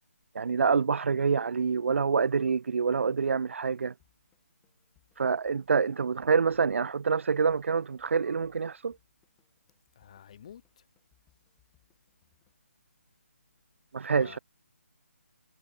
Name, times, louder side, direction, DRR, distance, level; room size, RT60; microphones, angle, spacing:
voice 1, 0.4-3.9 5.2-8.9 13.9-14.4, right 5 dB, 60° right, 0.3 m, -26 dB
sound 1, 4.0-12.5, left 12 dB, 5° left, 3.5 m, -72 dB
voice 2, 10.0-10.6 14.1-14.4, left 9 dB, 25° left, 1.2 m, -49 dB
hypercardioid pair, 175°, 8 cm